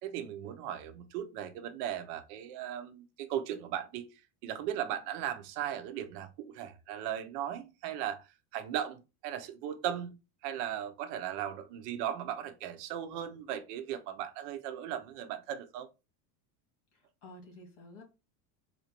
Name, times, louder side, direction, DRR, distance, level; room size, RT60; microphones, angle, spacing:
voice 1, 0.0-4.1 4.4-10.2 10.4-15.9, right 10 dB, 80° right, 0.8 m, -37 dB
voice 2, 16.9-18.0, left 1 dB, 70° left, 2.2 m, -52 dB
4.2 x 2.6 x 2.9 m
cardioid pair, 170°, 47 cm